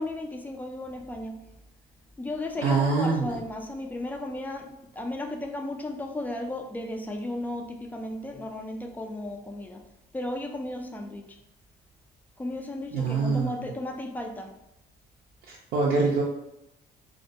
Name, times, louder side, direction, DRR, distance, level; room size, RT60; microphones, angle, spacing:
voice 1, 0.0-1.4 2.2-9.8 10.1-11.2 12.4-14.5, left 1 dB, 10° left, 3 dB, 0.3 m, -34 dB
voice 2, 2.6-3.4 12.9-13.5 15.5-16.2, right 4 dB, 65° right, -3 dB, 0.4 m, -24 dB
2.2 x 2.1 x 2.6 m, 0.83 s
cardioid pair, 110°, 17 cm